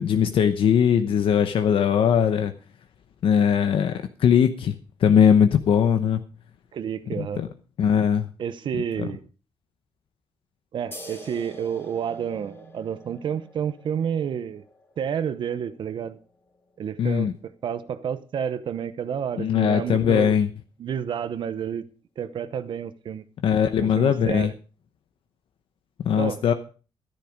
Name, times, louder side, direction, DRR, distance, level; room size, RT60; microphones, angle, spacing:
voice 1, 0.0-2.5 3.2-3.9 4.2-4.7 5.0-6.2 7.2-7.5 7.8-8.3 9.0-9.1 17.0-17.3 19.4-20.5 23.4-24.5 26.0-26.5, left 8 dB, 65° left, 0.9 m, -20 dB
voice 2, 6.7-7.4 8.4-9.2 10.7-14.6 15.0-16.2 16.8-20.4 20.8-21.9 22.2-23.2 23.8-24.5 26.2-26.4, right 8 dB, 55° right, 0.8 m, -30 dB
sound 1, 10.9-18.0, left 1 dB, 25° left, 3.0 m, -48 dB
13.5 x 10.5 x 5.1 m
wide cardioid pair, 180°, 10 cm